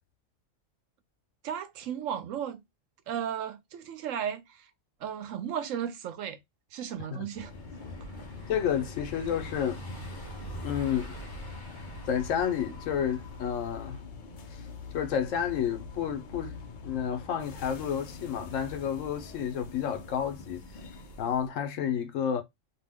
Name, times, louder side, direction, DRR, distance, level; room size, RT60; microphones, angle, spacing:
voice 1, 1.4-2.6 3.1-4.7 5.0-6.4 6.7-7.5, right 9 dB, 80° right, 1.0 m, -35 dB
Car passing by / Engine, 7.3-14.0, left 1 dB, 20° left, 0.9 m, -47 dB
sound 1, 7.4-21.5, left 3 dB, 50° left, 0.6 m, -43 dB
voice 2, 8.5-9.8 10.6-11.1 12.1-14.0 14.5-14.6 14.9-16.6 16.8-20.6 21.2-22.4, left 8 dB, 80° left, 1.0 m, -30 dB
2.8 x 2.1 x 3.3 m
omnidirectional pair, 1.3 m